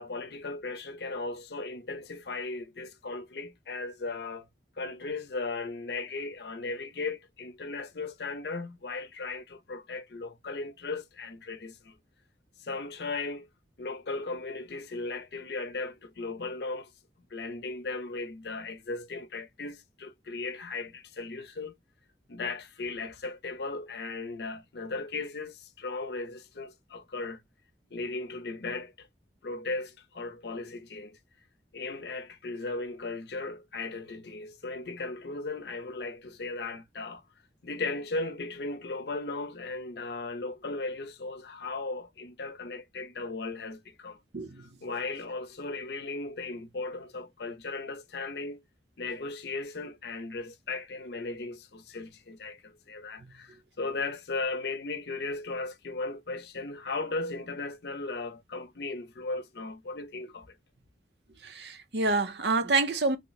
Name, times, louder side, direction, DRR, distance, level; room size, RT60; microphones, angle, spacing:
voice 1, 0.0-4.5 4.8-11.9 12.6-13.5 13.8-16.9 17.3-21.7 22.3-27.4 27.9-29.1 29.4-31.2 31.7-37.2 37.6-44.2 44.8-48.6 49.0-60.5, left 3 dB, 65° left, 0.6 m, -37 dB
voice 2, 44.3-44.7 61.4-63.2, right 3 dB, 75° right, 0.7 m, -27 dB
3.2 x 2.1 x 3.9 m
head